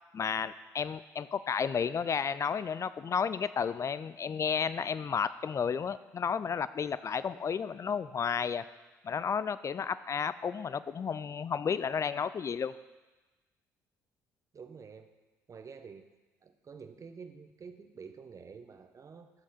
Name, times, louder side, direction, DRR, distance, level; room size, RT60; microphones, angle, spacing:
voice 1, 0.1-8.6 9.0-12.7, left 6 dB, 35° left, 15 dB, 0.5 m, -32 dB
voice 2, 14.5-15.1 15.5-16.1 16.4-19.3, right 5 dB, 40° right, 8 dB, 1.0 m, -48 dB
12.0 x 7.3 x 4.2 m, 1.2 s
hypercardioid pair, 55°, 8 cm